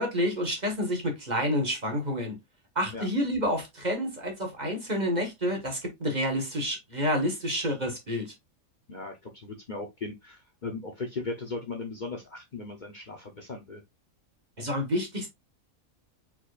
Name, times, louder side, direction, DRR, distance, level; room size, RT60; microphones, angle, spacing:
voice 1, 0.0-2.4 2.7-8.3 14.6-15.3, equal, 30° right, 1.5 m, -29 dB
voice 2, 8.9-13.8, left 3 dB, 40° left, 1.0 m, -37 dB
4.5 x 4.4 x 2.4 m
omnidirectional pair, 1.4 m